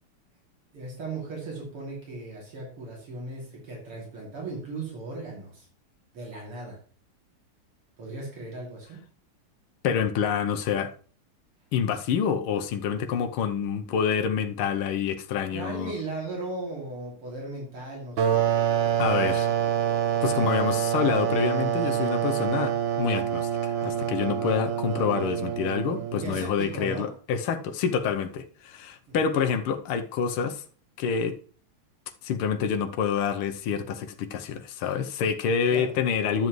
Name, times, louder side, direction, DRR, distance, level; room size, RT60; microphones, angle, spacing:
voice 1, 0.7-5.7 6.1-6.8 8.0-9.0 15.5-18.4 26.1-27.1 29.1-29.4 35.7-36.0, right 2 dB, 85° right, 3.6 m, -37 dB
voice 2, 9.8-10.9 11.7-15.9 19.0-19.5 20.2-30.6 31.0-31.4 32.2-36.5, left 7 dB, 80° left, 1.7 m, -27 dB
sound 1, 18.2-26.5, right 10 dB, 65° right, 1.6 m, -26 dB
11.5 x 7.3 x 3.1 m
omnidirectional pair, 2.4 m